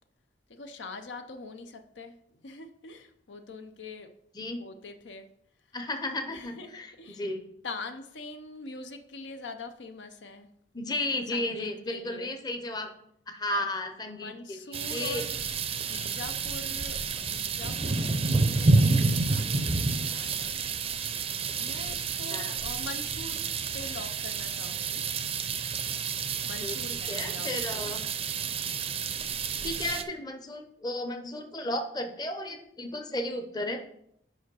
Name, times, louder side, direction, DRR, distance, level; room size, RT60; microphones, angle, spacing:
voice 1, 0.5-4.1 4.6-5.3 6.3-7.2 7.6-10.5 11.3-12.3 13.5-13.6 14.1-18.1 18.5-20.6 21.0-25.0 26.4-27.9, left 3 dB, 85° left, 7 dB, 0.7 m, -44 dB
voice 2, 5.7-7.4 10.7-12.9 13.3-15.3 22.3-22.6 26.6-28.0 29.6-33.8, left 1 dB, 25° left, 6 dB, 0.7 m, -34 dB
sound 1, 14.7-30.0, right 4 dB, 35° right, 0.5 m, -29 dB
5.0 x 4.9 x 6.1 m, 0.72 s
head